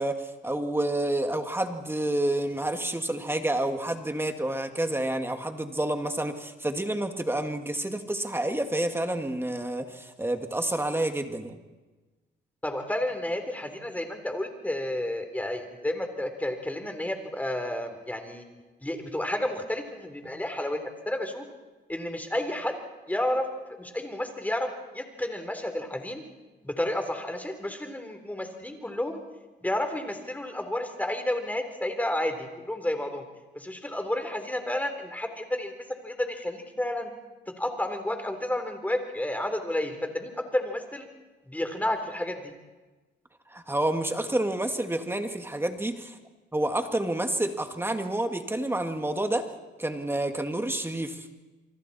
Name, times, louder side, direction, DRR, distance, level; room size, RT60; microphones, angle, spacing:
voice 1, 0.0-11.6 43.5-46.2 46.5-49.5 49.8-51.3, right 1 dB, 10° right, 6 dB, 2.1 m, -29 dB
voice 2, 12.6-18.4 18.8-21.4 21.9-22.7 23.1-23.5 23.8-24.7 24.9-26.2 26.6-29.2 29.6-33.2 33.5-35.7 36.0-37.1 37.6-41.1 41.5-42.5, left 1 dB, 10° left, 6 dB, 3.7 m, -31 dB
28.0 x 24.0 x 4.3 m, 1.2 s
cardioid pair, 90°, 20 cm